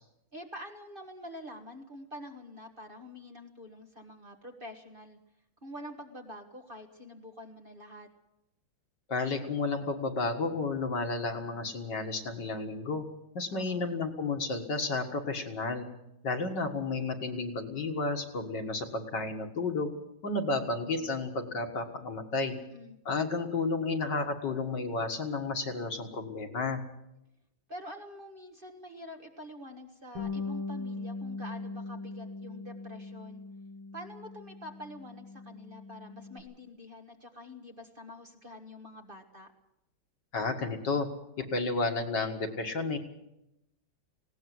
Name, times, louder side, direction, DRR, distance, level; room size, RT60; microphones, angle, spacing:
voice 1, 0.3-5.2 5.6-8.1 13.5-13.9 22.5-23.0 27.7-33.4 33.9-39.5, left 1 dB, 30° right, 3 dB, 1.6 m, -46 dB
voice 2, 9.1-13.1 13.3-15.9 16.2-19.9 20.2-22.6 23.1-26.8 40.3-41.1 41.4-43.0, left 3 dB, 60° left, 4 dB, 2.4 m, -32 dB
Bass guitar, 30.2-36.4, left 3 dB, 85° right, 5.0 m, -40 dB
19.5 x 17.5 x 7.9 m, 0.86 s
omnidirectional pair, 2.2 m